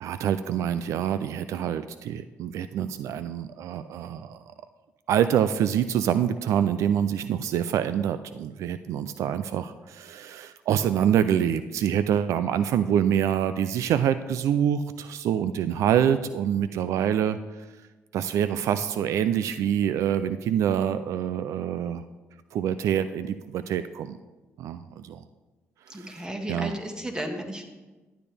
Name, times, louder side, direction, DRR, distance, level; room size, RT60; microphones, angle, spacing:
voice 1, 0.0-4.4 5.1-17.7 18.1-22.0 22.5-24.2 24.6-25.2 25.9-26.7, right 9 dB, 75° right, 12 dB, 0.4 m, -26 dB
voice 2, 25.9-27.6, right 1 dB, 15° right, 4 dB, 1.6 m, -34 dB
12.0 x 8.9 x 3.4 m, 1.2 s
cardioid pair, 75°, 5 cm